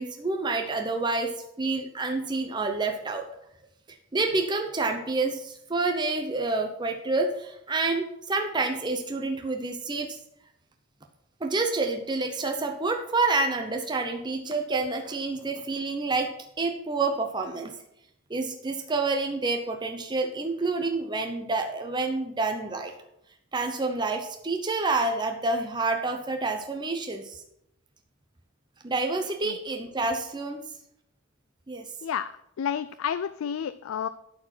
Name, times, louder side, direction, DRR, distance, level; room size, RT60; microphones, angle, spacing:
voice 1, 0.0-1.3 1.6-3.2 3.9-10.2 11.4-16.3 16.6-17.8 18.3-22.9 23.5-27.4 28.8-30.6 31.7-31.9, right 3 dB, 20° right, 4 dB, 0.7 m, -28 dB
voice 2, 32.6-34.1, left 8 dB, 85° left, 13 dB, 0.3 m, -30 dB
12.0 x 4.5 x 6.0 m, 0.80 s
head